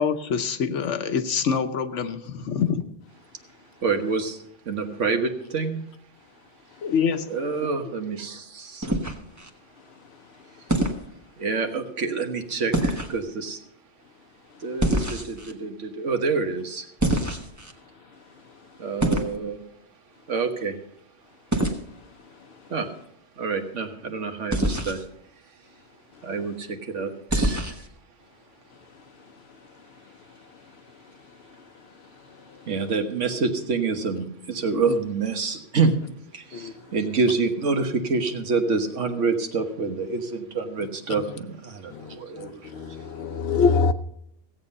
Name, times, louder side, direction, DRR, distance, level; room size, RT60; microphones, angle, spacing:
voice 1, 0.0-2.8 6.8-7.2, left 6 dB, 80° left, 1.2 m, -25 dB
voice 2, 3.8-5.8 7.3-8.9 11.4-13.6 14.6-16.9 18.8-19.6 20.3-20.8 22.7-22.9 23.4-25.0 26.2-27.8 32.7-35.9 36.3-43.0, right 4 dB, 85° right, 1.6 m, -27 dB
sound 1, 8.8-9.5 10.7-11.0 12.7-13.2 14.8-15.5 17.0-17.7 19.0-19.4 21.5-21.8 24.5-25.0 27.3-27.9, right 1 dB, 15° right, 1.1 m, -24 dB
voice 3, 42.7-43.9, left 4 dB, 65° left, 0.9 m, -23 dB
16.0 x 8.0 x 5.4 m
omnidirectional pair, 1.2 m